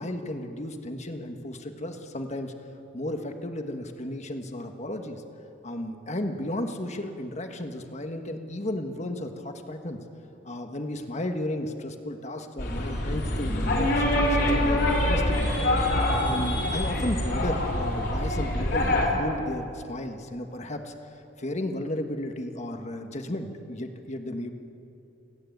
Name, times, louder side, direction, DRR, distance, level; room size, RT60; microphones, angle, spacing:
voice 1, 0.0-2.5 2.9-5.2 5.6-10.0 10.4-15.5 16.2-20.9 21.4-24.5, left 1 dB, 40° left, 6 dB, 1.4 m, -34 dB
sound 1, 12.6-19.1, left 1 dB, 60° left, 3.8 m, -25 dB
29.0 x 9.8 x 9.3 m, 2.8 s
head